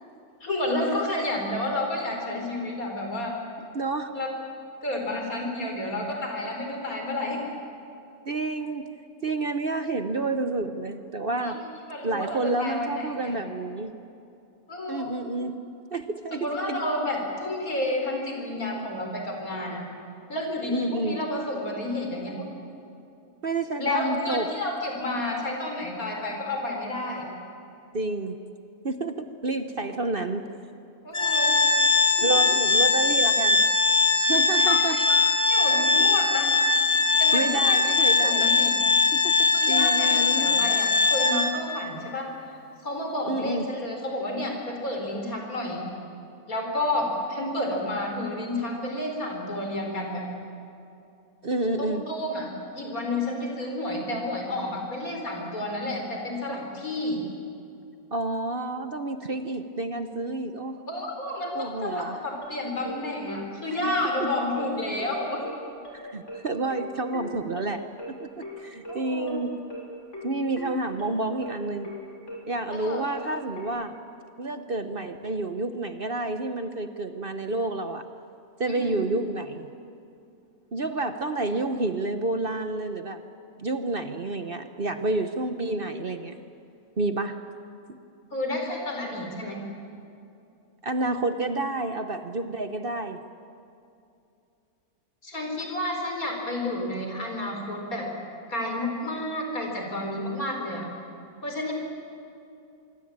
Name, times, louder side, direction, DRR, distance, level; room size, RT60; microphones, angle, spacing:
voice 1, 0.4-3.4 4.1-4.3 4.8-7.4 11.4-11.6 11.9-13.4 14.7-15.1 16.3-19.8 20.3-22.5 23.8-27.3 31.0-31.5 32.2-32.3 34.5-35.0 35.5-36.5 37.2-38.8 39.5-42.3 42.8-46.0 46.5-50.2 51.8-57.2 60.9-65.4 68.9-69.4 72.7-73.1 78.7-79.0 88.3-89.6 95.2-98.1 98.5-100.9 101.4-101.7, left 1 dB, 70° left, 1 dB, 5.2 m, -30 dB
voice 2, 3.6-4.1 8.3-8.9 9.2-11.6 12.0-14.0 14.9-15.6 15.9-16.8 20.7-21.2 23.4-24.5 27.9-28.4 28.8-30.5 32.2-33.6 34.2-35.0 37.3-38.4 39.1-40.8 43.2-43.7 51.4-52.0 58.1-60.8 61.5-62.2 63.8-63.9 65.9-67.8 68.1-69.6 70.2-71.9 72.5-74.0 74.4-78.0 78.6-79.7 80.7-83.2 83.6-86.4 87.0-87.3 87.9-88.0 90.8-93.2, right 2 dB, 40° right, 8 dB, 1.1 m, -29 dB
Organ, 31.1-41.8, left 4 dB, 20° left, 1.7 m, -21 dB
sound 1, 62.4-73.6, left 2 dB, 50° left, 6.7 m, -40 dB
25.0 x 24.0 x 8.9 m, 2.6 s
omnidirectional pair, 1.6 m